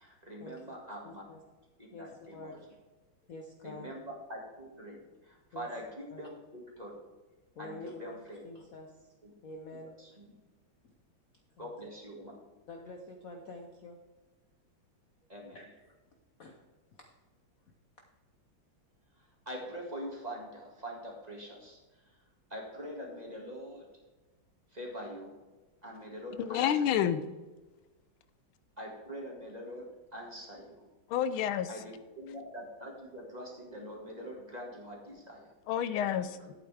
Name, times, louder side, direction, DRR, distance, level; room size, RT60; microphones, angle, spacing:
voice 1, 0.0-1.2 1.8-2.6 3.6-4.0 4.3-6.9 7.6-8.4 9.2-9.3 10.0-10.3 11.6-12.4 15.3-15.6 19.2-22.2 22.5-23.9 24.7-25.4 25.8-27.1 28.8-30.9 31.7-35.5 36.2-36.5, equal, 20° right, -2 dB, 1.9 m, -44 dB
voice 2, 1.0-1.4 1.9-2.8 3.3-3.9 5.5-5.7 6.1-6.2 7.5-8.2 8.4-9.1 9.4-10.0 10.8-10.9 11.6-11.7 12.7-14.0 15.5-16.0 16.4-16.6 16.9-17.1, left 2 dB, 55° left, 3 dB, 1.0 m, -47 dB
voice 3, 26.4-27.2 31.1-31.7 35.7-36.4, left 9 dB, 90° left, 13 dB, 1.4 m, -29 dB
11.0 x 8.7 x 3.4 m, 1.2 s
omnidirectional pair, 2.3 m